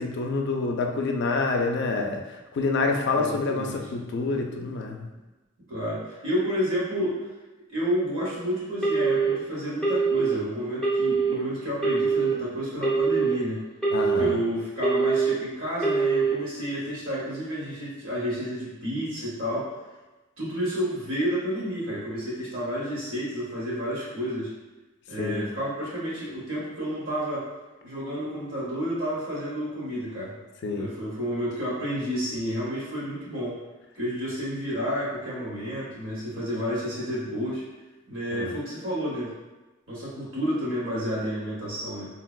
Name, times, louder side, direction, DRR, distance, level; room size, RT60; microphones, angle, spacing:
voice 1, 0.0-5.1 13.9-14.4 25.2-25.5 30.6-30.9 38.3-38.5, left 3 dB, 55° left, 3 dB, 0.3 m, -27 dB
voice 2, 3.1-3.8 5.7-7.3 7.7-13.6 14.2-19.7 20.4-24.5 25.1-27.5 27.8-30.4 30.7-33.6 33.9-37.6 38.1-39.3 39.9-42.1, equal, 70° right, -9 dB, 1.4 m, -30 dB
Telephone, 8.8-9.3 9.8-10.3 10.8-11.3 11.8-12.3 12.8-13.3 13.8-14.3 14.8-15.3 15.8-16.3, right 5 dB, 5° left, 0.6 m, -23 dB
3.7 x 2.1 x 2.3 m, 1.1 s
head